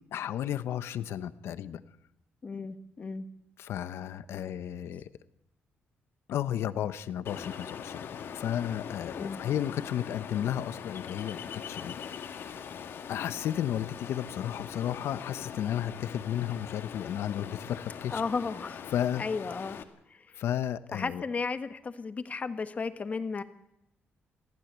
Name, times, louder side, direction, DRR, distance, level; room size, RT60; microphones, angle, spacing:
voice 1, 0.1-1.8 3.6-5.1 6.3-11.9 13.1-18.2 18.9-19.2 20.3-21.2, left 10 dB, 85° left, 13 dB, 1.1 m, -33 dB
voice 2, 2.4-3.3 9.2-9.4 18.1-18.9 19.2-19.8 20.9-23.4, left 4 dB, 35° left, 10 dB, 1.5 m, -34 dB
Ocean, 7.3-19.8, left 7 dB, 70° left, 2.0 m, -42 dB
23.0 x 15.5 x 8.2 m, 0.81 s
cardioid pair, 120°, 4 cm